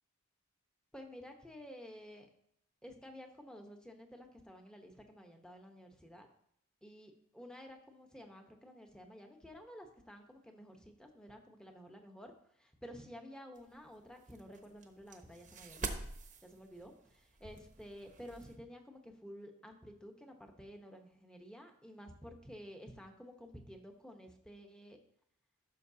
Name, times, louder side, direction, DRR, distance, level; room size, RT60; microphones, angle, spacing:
voice 1, 0.9-2.3 2.8-6.3 6.8-16.1 16.4-25.0, equal, 5° left, 3 dB, 1.0 m, -52 dB
sound 1, 13.6-18.6, right 3 dB, 40° right, 0.9 m, -47 dB
14.5 x 6.5 x 2.8 m, 0.70 s
head